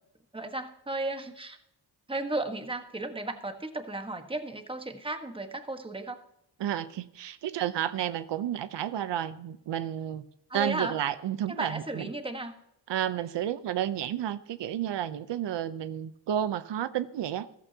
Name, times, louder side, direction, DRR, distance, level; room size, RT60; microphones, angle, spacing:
voice 1, 0.3-1.6 2.1-6.2 10.5-11.0 11.5-12.5, right 2 dB, 15° right, 7 dB, 1.3 m, -34 dB
voice 2, 6.6-10.2 10.5-12.1 12.9-17.5, right 10 dB, 85° right, 13 dB, 0.7 m, -31 dB
14.5 x 14.0 x 2.8 m, 0.78 s
cardioid pair, 95°, 41 cm